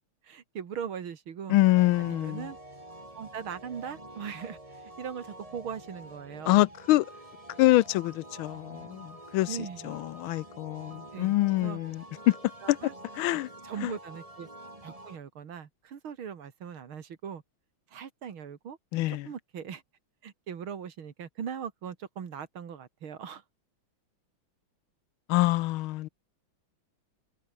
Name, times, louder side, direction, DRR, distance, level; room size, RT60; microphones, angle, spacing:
voice 1, 0.0-1.6 2.0-2.6 3.1-6.6 9.5-10.0 11.1-11.8 12.6-12.9 13.3-14.5 14.8-17.4 17.9-18.8 19.1-19.8 20.2-23.4, right 7 dB, 90° right, 2.7 m, -40 dB
voice 2, 1.5-2.5 6.5-7.1 7.6-9.5 9.8-12.4 12.7-12.8 13.2-13.5 13.8-13.9 18.9-19.3 25.3-26.1, left 17 dB, 85° left, 1.5 m, -25 dB
sound 1, 1.7-15.2, right 1 dB, 15° right, 4.6 m, -47 dB
omnidirectional pair, 2.2 m